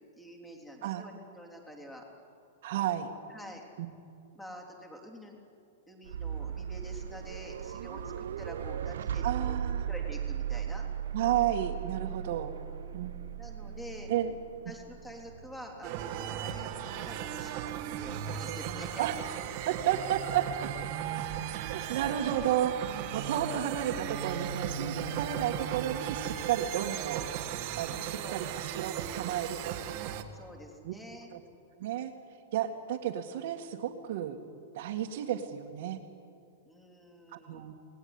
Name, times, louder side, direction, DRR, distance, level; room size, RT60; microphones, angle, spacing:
voice 1, 0.2-2.0 3.3-3.6 4.3-5.4 5.9-10.9 12.0-12.4 13.4-14.1 14.7-19.1 23.4-23.6 27.9-28.5 30.3-31.3 36.6-37.7, equal, 5° left, 1 dB, 3.5 m, -47 dB
voice 2, 2.6-3.1 3.8-3.9 9.2-9.9 11.1-12.5 12.9-13.1 14.1-14.3 19.0-19.2 19.7-20.7 21.7-27.2 27.8-29.8 30.8-30.9 31.3-31.4 31.8-32.1 32.5-34.4 34.7-36.0 37.3-37.7, right 11 dB, 55° right, -1 dB, 2.1 m, -32 dB
sound 1, 6.1-22.0, right 8 dB, 75° right, 0.6 m, -39 dB
sound 2, 15.8-30.2, right 9 dB, 35° right, 1.9 m, -36 dB
28.5 x 19.5 x 9.8 m, 2.6 s
supercardioid pair, 165°, 0 cm